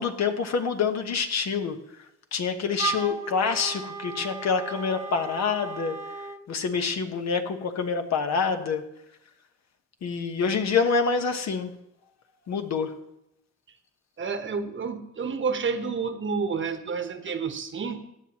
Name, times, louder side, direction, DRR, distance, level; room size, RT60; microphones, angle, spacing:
voice 1, 0.0-1.8 2.3-6.0 6.5-8.8 10.0-11.7 12.5-12.9, left 5 dB, 60° left, 6 dB, 1.3 m, -26 dB
Wind instrument woodwind instrument, 2.8-6.4, right 5 dB, 10° right, 1.0 m, -35 dB
voice 2, 14.2-18.0, right 5 dB, 40° right, 8 dB, 1.2 m, -30 dB
16.0 x 9.6 x 3.0 m, 0.82 s
cardioid pair, 90°, 30 cm